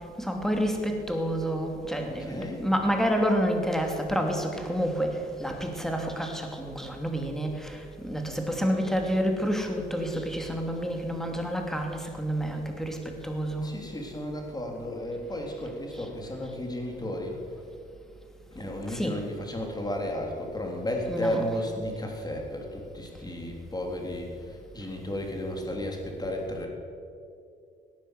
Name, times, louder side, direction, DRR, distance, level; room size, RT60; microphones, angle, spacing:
voice 1, 0.2-7.8 8.0-13.7 18.9-19.2 21.1-21.4, equal, ahead, 3 dB, 2.9 m, -29 dB
voice 2, 2.0-2.6 13.6-17.4 18.5-26.7, left 1 dB, 20° left, 1 dB, 3.8 m, -33 dB
17.5 x 10.5 x 7.9 m, 2.5 s
cardioid pair, 90°, 20 cm